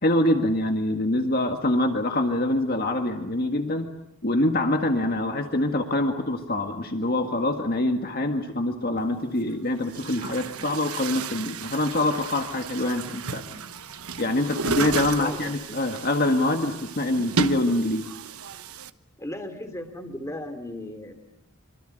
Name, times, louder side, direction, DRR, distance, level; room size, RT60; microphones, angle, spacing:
voice 1, 0.0-3.9 4.2-13.6 14.2-18.1, left 1 dB, 45° left, 5 dB, 1.8 m, -25 dB
Chatter / Gurgling / Tap, 9.0-9.1 9.8-18.9, right 5 dB, 80° right, 1.1 m, -33 dB
voice 2, 15.1-15.5 19.2-21.1, left 1 dB, 15° left, 6 dB, 2.9 m, -36 dB
26.0 x 25.5 x 9.0 m, 0.79 s
head